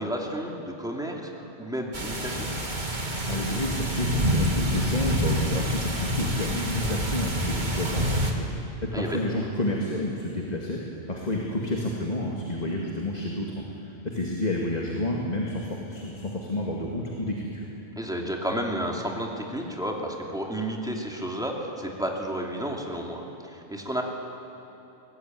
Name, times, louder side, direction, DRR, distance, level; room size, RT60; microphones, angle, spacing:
voice 1, 0.0-2.5 8.9-9.5 18.0-24.0, equal, 5° right, 0 dB, 2.8 m, -32 dB
sound 1, 1.9-8.3, equal, 45° right, 2.3 m, -27 dB
voice 2, 3.3-8.5 8.8-17.7, left 1 dB, 40° left, -1 dB, 2.2 m, -30 dB
23.0 x 19.0 x 9.5 m, 2.9 s
omnidirectional pair, 1.1 m